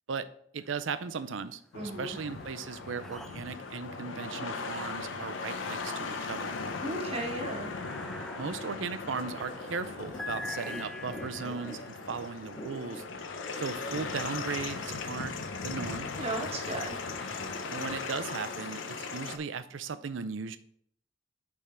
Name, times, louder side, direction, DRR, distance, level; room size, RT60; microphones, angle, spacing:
voice 1, 0.5-6.5 8.3-13.0 13.5-15.3 15.6-16.1 17.7-20.6, right 5 dB, 85° right, 12 dB, 0.5 m, -37 dB
sound 1, 0.6-1.3 1.6-14.8 15.4-19.9, left 2 dB, ahead, 0.4 m, -48 dB
sound 2, 1.7-19.4, left 4 dB, 85° left, 0.6 m, -38 dB
voice 2, 1.7-2.2 6.8-7.7 16.2-16.9, right 1 dB, 30° right, 1 dB, 1.2 m, -35 dB
sound 3, 9.2-14.5, equal, 20° left, 1.8 m, -45 dB
8.4 x 3.6 x 4.3 m, 0.65 s
head